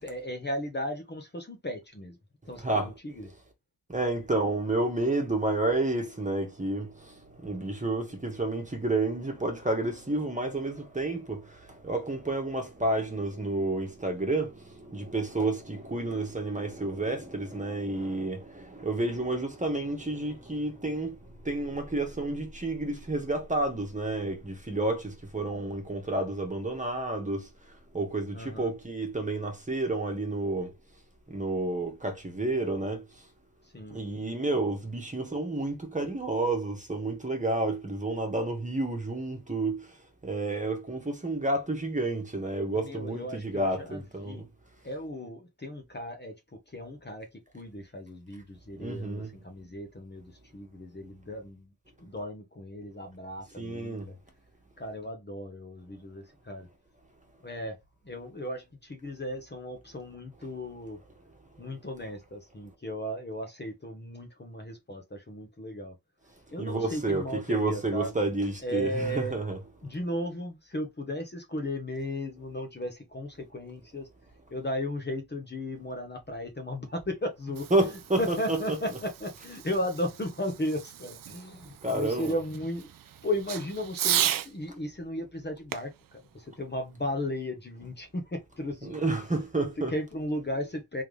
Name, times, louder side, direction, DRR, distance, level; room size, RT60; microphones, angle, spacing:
voice 1, 0.0-2.2 2.5-3.3 28.3-28.7 33.6-34.0 42.7-44.5 44.8-51.7 52.0-54.2 54.8-56.7 57.4-57.8 58.0-61.0 61.6-65.9 66.5-68.1 68.6-69.4 69.8-74.1 74.5-82.9 83.2-89.0 89.8-91.0, left 1 dB, 25° left, 1.1 m, -35 dB
voice 2, 2.6-2.9 3.9-30.7 31.3-33.0 33.9-40.0 40.2-44.4 48.8-49.3 53.6-54.1 66.6-69.6 77.7-78.6 81.8-82.3 88.8-89.9, right 2 dB, 20° right, 1.4 m, -30 dB
Fireworks, 77.3-84.5 85.7-87.3, right 10 dB, 60° right, 0.5 m, -35 dB
3.8 x 3.4 x 3.3 m
cardioid pair, 80°, 39 cm